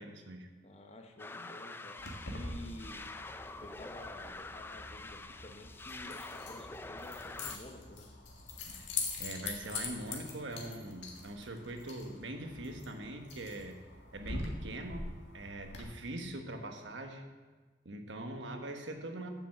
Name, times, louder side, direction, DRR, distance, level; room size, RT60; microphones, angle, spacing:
voice 1, 0.0-0.5 8.7-8.8 9.2-13.8 14.1-17.3 17.8-19.3, right 1 dB, 85° right, 5 dB, 1.1 m, -42 dB
voice 2, 0.6-3.0 3.6-8.1, left 1 dB, 35° left, 4 dB, 0.9 m, -51 dB
sound 1, 1.2-7.6, left 3 dB, 10° left, 0.3 m, -46 dB
Keys jangling, 2.0-15.8, left 3 dB, 85° left, 1.8 m, -44 dB
7.6 x 7.0 x 7.3 m, 1.3 s
head